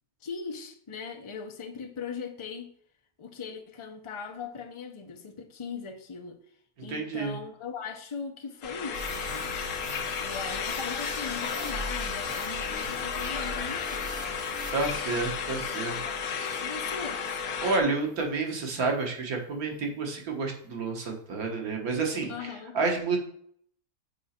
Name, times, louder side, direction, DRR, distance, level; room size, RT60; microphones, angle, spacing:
voice 1, 0.2-2.7 3.2-6.4 6.8-9.6 10.2-14.5 16.6-17.2 22.3-22.8, left 5 dB, 30° left, 0.5 m, -39 dB
voice 2, 6.9-7.4 14.7-16.0 16.6-16.7 17.6-23.2, right 3 dB, 90° right, 1.8 m, -30 dB
sound 1, 8.6-17.8, left 6 dB, 80° left, 1.2 m, -33 dB
sound 2, 8.9-17.6 18.1-18.2, right 2 dB, 65° right, 1.2 m, -43 dB
6.5 x 4.9 x 4.3 m
omnidirectional pair, 1.5 m